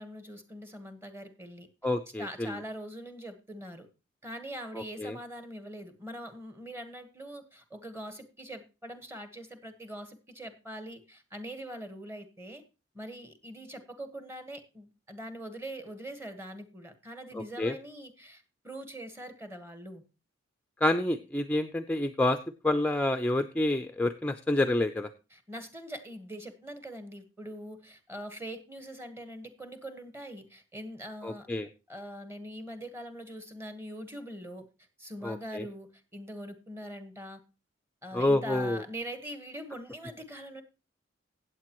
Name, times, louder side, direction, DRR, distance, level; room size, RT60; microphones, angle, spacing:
voice 1, 0.0-1.7 2.2-3.9 4.2-12.6 12.9-20.0 25.3-31.5 31.9-34.7 35.0-37.4 38.0-40.6, equal, 15° right, 8 dB, 1.3 m, -43 dB
voice 2, 1.8-2.5 4.7-5.2 17.3-17.7 20.8-22.4 22.6-25.1 31.2-31.7 35.2-35.6 38.1-38.8, left 1 dB, 5° left, 8 dB, 0.4 m, -28 dB
16.0 x 8.2 x 3.0 m, 0.31 s
head